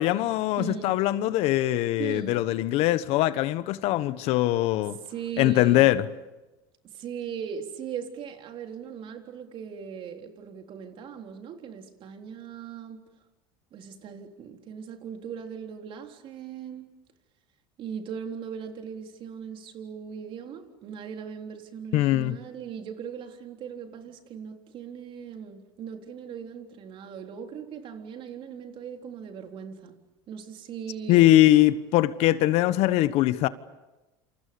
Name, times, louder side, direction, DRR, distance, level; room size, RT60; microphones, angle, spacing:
voice 1, 0.0-5.0 5.4-6.0 21.9-22.4 31.1-33.5, left 15 dB, 65° left, 1.2 m, -22 dB
voice 2, 0.6-1.0 2.0-2.5 5.0-5.9 6.8-13.1 13.7-16.9 17.8-30.0 30.3-31.3, right 7 dB, 50° right, 3.8 m, -39 dB
28.0 x 27.5 x 7.0 m
supercardioid pair, 105°, 11 cm